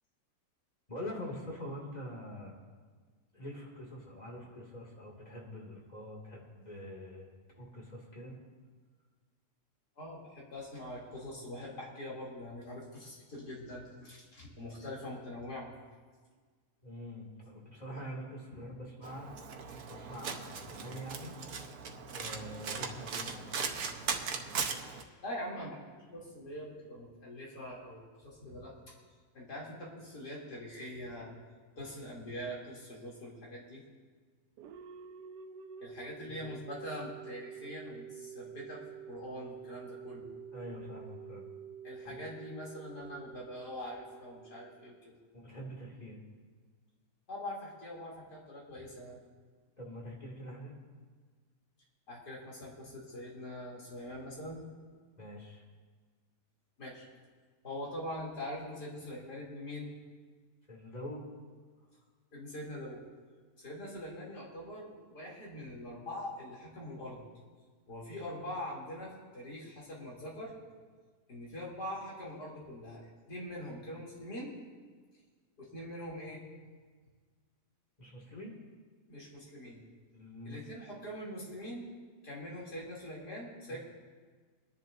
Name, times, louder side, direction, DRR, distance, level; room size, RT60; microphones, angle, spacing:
voice 1, 0.9-2.7 3.3-7.3 7.6-8.4 16.8-19.3 19.9-21.4 22.1-23.9 36.3-36.5 40.5-41.4 42.0-42.2 45.3-46.2 49.8-50.7 55.2-55.6 60.7-61.2 78.0-78.5 80.1-80.6 83.7-83.8, equal, 25° left, -2 dB, 2.3 m, -45 dB
voice 2, 10.0-15.7 25.2-28.7 29.3-31.3 31.8-33.8 35.8-40.3 41.8-45.2 47.3-49.2 52.1-54.7 56.8-57.0 57.6-59.9 62.3-63.1 63.6-67.2 67.9-70.5 71.3-74.5 75.6-76.4 79.1-79.8 80.4-81.9 82.2-83.8, left 1 dB, 75° left, -5 dB, 3.4 m, -43 dB
Domestic sounds home sounds, 19.0-25.0, right 5 dB, 65° right, 1.3 m, -38 dB
sound 1, 34.6-45.3, right 7 dB, 85° right, 1.3 m, -48 dB
24.5 x 10.5 x 2.6 m, 1.5 s
omnidirectional pair, 1.8 m